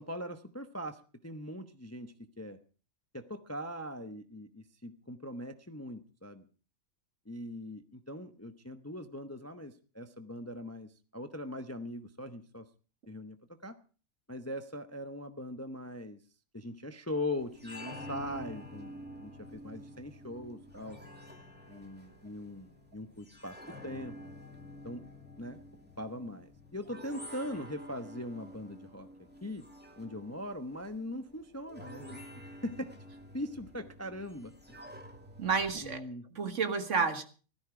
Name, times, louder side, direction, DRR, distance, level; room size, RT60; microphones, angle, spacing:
voice 1, 0.0-2.6 3.1-6.5 7.3-12.7 13.1-13.4 13.6-13.8 14.3-16.2 16.5-21.0 21.7-23.6 23.8-24.2 24.8-25.0 25.4-25.6 26.0-29.1 29.4-29.6 30.0-32.9 33.3-34.8 35.8-36.3, left 1 dB, 15° left, 0.7 m, -41 dB
sound 1, 17.4-36.0, equal, 5° right, 2.3 m, -49 dB
voice 2, 35.4-36.0 36.4-37.2, right 5 dB, 60° right, 1.7 m, -30 dB
16.0 x 13.5 x 4.8 m
omnidirectional pair, 1.5 m